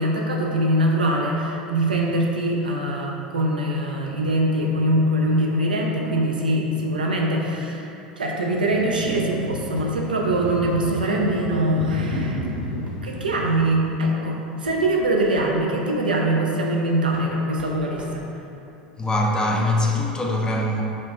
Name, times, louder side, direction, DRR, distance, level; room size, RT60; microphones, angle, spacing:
voice 1, 0.0-7.9 8.2-12.4 13.0-18.2, right 1 dB, 85° right, -1 dB, 0.4 m, -23 dB
sound 1, 8.5-13.9, left 1 dB, 70° left, 0.5 m, -32 dB
sound 2, 8.8-9.0 9.3-10.1 11.6-11.8 12.2-12.4 12.8-13.0 13.9-14.0 14.4-15.6 16.6-16.7 17.1-18.9, right 2 dB, 30° right, 0.6 m, -43 dB
voice 2, 19.0-20.8, left 1 dB, 15° left, 0 dB, 0.4 m, -22 dB
5.0 x 2.4 x 2.4 m, 2.8 s
figure-of-eight pair, 80°, 5 cm